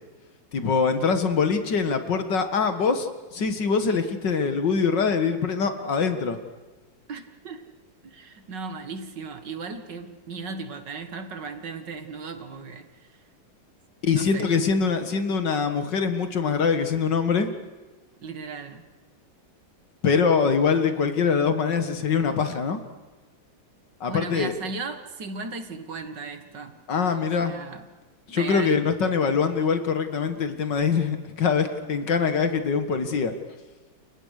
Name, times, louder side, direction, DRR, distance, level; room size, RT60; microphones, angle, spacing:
voice 1, 0.5-6.4 14.0-17.5 20.0-22.8 24.0-24.5 26.9-27.5 28.3-33.3, left 5 dB, 65° left, 9 dB, 2.3 m, -23 dB
voice 2, 7.1-7.6 8.0-13.2 14.1-14.5 18.2-18.8 24.1-26.8 27.2-27.9 28.4-28.9, right 4 dB, 60° right, 8 dB, 2.4 m, -36 dB
29.5 x 23.5 x 6.6 m, 1.2 s
omnidirectional pair, 2.1 m